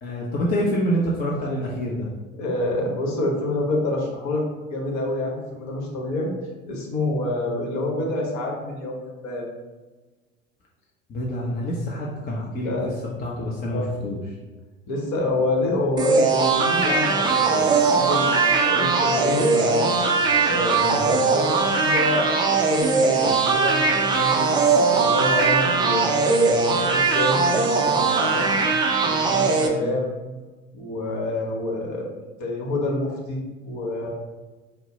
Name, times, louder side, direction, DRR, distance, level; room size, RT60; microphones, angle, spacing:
voice 1, 0.0-2.1 11.1-12.7 13.2-14.2 20.9-21.1, equal, 25° left, -4 dB, 0.6 m, -26 dB
voice 2, 2.4-4.4 4.7-6.3 6.7-9.4 12.6-12.9 13.7-13.9 14.9-19.9 20.4-24.5 24.9-28.6 29.0-30.1 30.7-32.1 32.4-33.4 33.6-34.1, left 2 dB, 45° left, -1 dB, 1.2 m, -27 dB
sound 1, 16.0-29.7, right 4 dB, 10° right, 0.3 m, -20 dB
4.3 x 2.1 x 3.8 m, 1.3 s
figure-of-eight pair, 75°, 40 cm